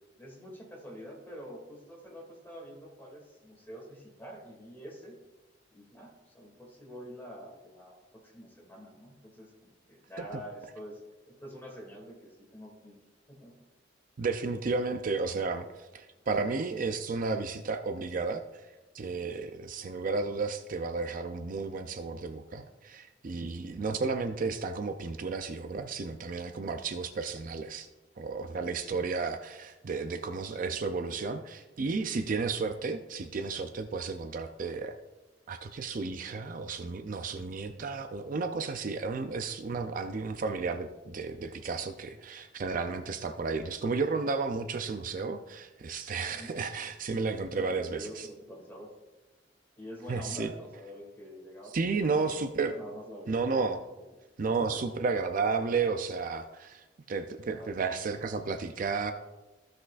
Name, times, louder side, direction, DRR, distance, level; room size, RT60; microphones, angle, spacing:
voice 1, 0.2-5.1 5.7-11.0 11.3-13.0 13.3-13.5 16.2-16.4 46.3-46.5 47.4-48.9 49.8-53.4 53.9-54.0 54.6-54.8 57.5-57.7, equal, 10° left, -2 dB, 2.4 m, -47 dB
voice 2, 14.2-18.7 18.9-27.9 28.2-35.0 35.5-48.3 50.1-50.5 51.7-52.8 53.3-53.8 54.4-59.1, right 4 dB, 50° right, 8 dB, 0.4 m, -33 dB
15.0 x 6.1 x 2.5 m, 1.1 s
head